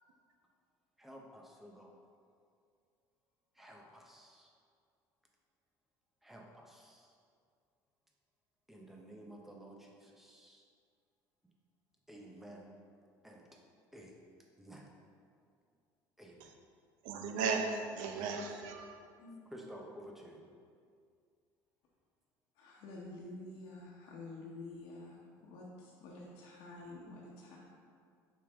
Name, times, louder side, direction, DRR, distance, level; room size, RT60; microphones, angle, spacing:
voice 1, 1.0-1.9 3.6-4.5 6.2-7.1 8.7-10.6 12.1-12.7 13.2-13.4 13.9-14.1 14.6-14.8 16.2-16.5 19.5-20.4, right 1 dB, 5° right, -1 dB, 0.7 m, -52 dB
voice 2, 17.0-19.0, right 5 dB, 90° right, 4 dB, 0.7 m, -36 dB
voice 3, 22.6-27.6, left 2 dB, 75° left, -6 dB, 1.1 m, -49 dB
6.6 x 5.1 x 3.5 m, 2.2 s
cardioid pair, 160°, 8 cm